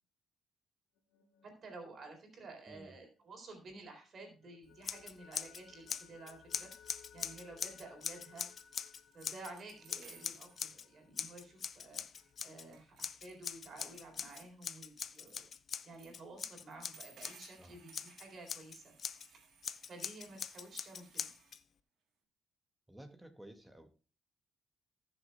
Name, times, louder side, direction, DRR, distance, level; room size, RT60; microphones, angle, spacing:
sound 1, 1.0-3.8 4.1-13.6, left 7 dB, 85° left, 1.6 m, -64 dB
voice 1, 1.4-6.7 7.1-8.5 9.1-12.0 12.4-15.5 15.8-18.9 19.3-19.4 19.9-21.3, right 2 dB, 55° right, 3 dB, 4.1 m, -52 dB
voice 2, 2.7-3.0 17.6-17.8 22.9-23.9, right 1 dB, 5° right, 6 dB, 2.1 m, -54 dB
Scissors, 4.8-5.6 5.9-9.5 9.9-10.9 11.2-12.7 13.0-17.5 17.9-19.3 19.6-21.6, left 7 dB, 50° left, 0.7 m, -42 dB
sound 2, 8.7-8.8 9.1-10.6 11.7-11.8 12.2-12.4 12.7-13.4 13.7-14.5 15.1-15.4 15.7-16.2 16.7-21.5, right 6 dB, 75° right, 3.2 m, -61 dB
20.0 x 7.0 x 2.3 m, 0.35 s
cardioid pair, 90°, 0 cm